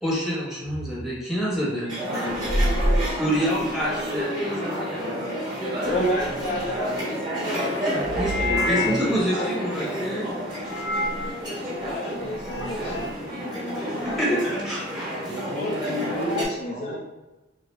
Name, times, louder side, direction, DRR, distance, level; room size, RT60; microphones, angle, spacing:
voice 1, 0.0-1.9 3.1-5.1 7.8-10.3 13.5-14.8, equal, ahead, -7 dB, 0.9 m, -28 dB
sound 1, 0.6-0.9 2.3-4.0 5.9-7.0 8.0-9.2 10.6-11.3 12.3-13.1, left 1 dB, 40° right, 0.9 m, -28 dB
voice 2, 1.7-2.9 15.3-17.0, left 1 dB, 65° right, 2 dB, 0.5 m, -34 dB
sound 2, 1.9-16.5, equal, 25° right, 1.1 m, -30 dB
voice 3, 5.8-7.1 8.4-9.0 9.3-9.9 11.8-13.1 13.5-14.4 15.3-17.0, left 1 dB, 40° left, -3 dB, 0.4 m, -31 dB
3.7 x 2.2 x 3.0 m, 1.1 s
head